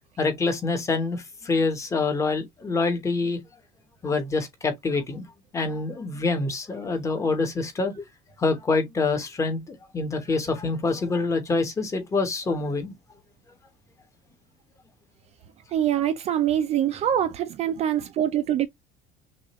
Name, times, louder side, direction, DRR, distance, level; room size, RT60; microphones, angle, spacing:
voice 1, 0.2-3.4 4.0-5.2 5.5-7.9 8.4-9.6 9.9-12.9, left 3 dB, 15° left, 1.0 m, -26 dB
voice 2, 15.7-18.7, right 10 dB, 35° right, 0.4 m, -24 dB
6.1 x 2.4 x 3.0 m
cardioid pair, 170°, 20 cm